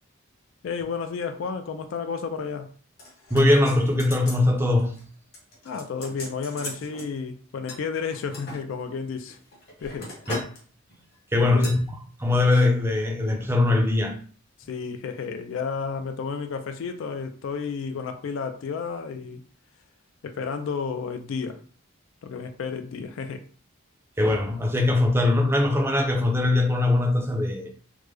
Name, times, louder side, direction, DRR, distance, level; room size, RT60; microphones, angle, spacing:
voice 1, 0.6-2.7 5.6-9.4 9.8-10.1 11.4-11.7 14.6-19.4 20.2-21.6 22.2-23.4, left 5 dB, 65° left, 0.3 m, -32 dB
sound 1, 3.0-4.5 4.8-5.0 5.3-7.1 7.7-8.6 9.2-10.6 10.9-11.1 11.6-11.8 12.4-12.7 12.9-13.0, left 1 dB, 50° left, 1.2 m, -39 dB
voice 2, 3.3-4.9 10.3-10.4 11.3-11.8 12.2-14.2 24.2-27.7, left 2 dB, 10° right, 0.4 m, -21 dB
3.3 x 2.0 x 3.3 m
head